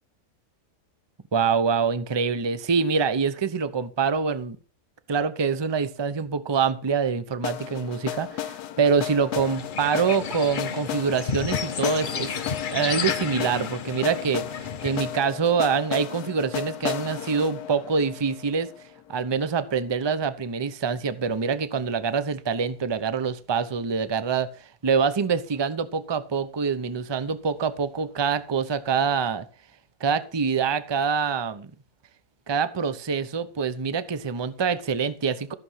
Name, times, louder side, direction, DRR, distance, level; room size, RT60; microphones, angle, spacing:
voice 1, 1.3-4.6 5.1-12.4 12.7-18.7 19.1-24.5 24.8-29.5 30.0-31.7 32.5-35.5, right 5 dB, 25° right, 0.5 m, -25 dB
sound 1, 7.4-19.3, left 11 dB, 75° left, 1.3 m, -34 dB
sound 2, 9.3-15.2, left 6 dB, 45° left, 0.7 m, -32 dB
14.0 x 7.1 x 5.7 m
omnidirectional pair, 1.7 m